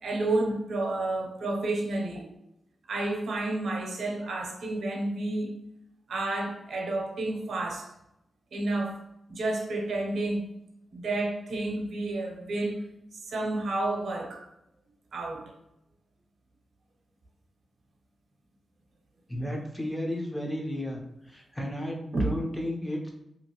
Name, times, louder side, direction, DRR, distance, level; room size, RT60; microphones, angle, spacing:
voice 1, 0.0-2.2 2.9-5.6 6.1-7.9 8.5-9.0 9.3-10.5 10.9-12.9 13.1-14.4 15.1-15.5 22.1-22.3, right 2 dB, 75° right, 0.7 m, -30 dB
voice 2, 19.3-21.0 21.3-23.1, left 1 dB, 10° left, 0.7 m, -33 dB
2.8 x 2.6 x 2.9 m
cardioid pair, 70°, 0 cm